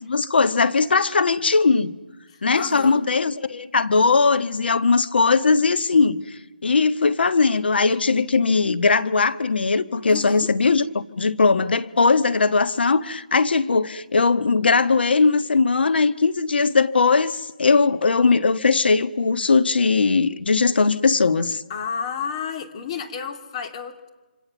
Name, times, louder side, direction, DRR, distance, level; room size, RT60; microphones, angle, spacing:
voice 1, 0.0-1.9 2.4-21.6, left 4 dB, 80° left, 1.4 m, -19 dB
voice 2, 2.3-3.0 10.1-10.5 21.7-24.1, left 6 dB, 40° left, 2.6 m, -31 dB
27.0 x 26.0 x 7.2 m
hypercardioid pair, 160°, 5 cm